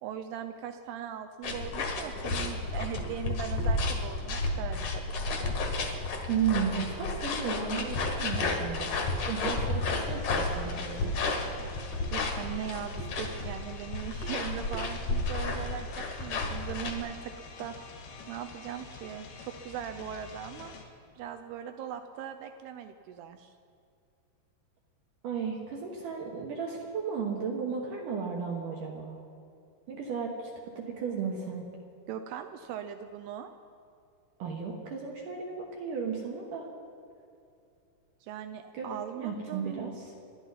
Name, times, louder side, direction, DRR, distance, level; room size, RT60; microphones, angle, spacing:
voice 1, 0.0-5.0 5.3-5.5 12.1-17.3 17.6-17.8 18.3-20.7 21.2-23.6 32.1-33.5 38.2-39.8, right 9 dB, 90° right, 7 dB, 2.2 m, -39 dB
sound 1, 1.4-17.0, left 3 dB, 55° left, 2.3 m, -32 dB
voice 2, 6.3-11.1 25.2-29.2 29.9-31.7 34.4-36.7 38.7-38.9 39.1-40.1, right 6 dB, 70° right, 0 dB, 2.0 m, -34 dB
sound 2, 10.0-20.8, left 4 dB, 85° left, 4.0 m, -47 dB
29.0 x 11.0 x 4.1 m, 2.5 s
omnidirectional pair, 5.3 m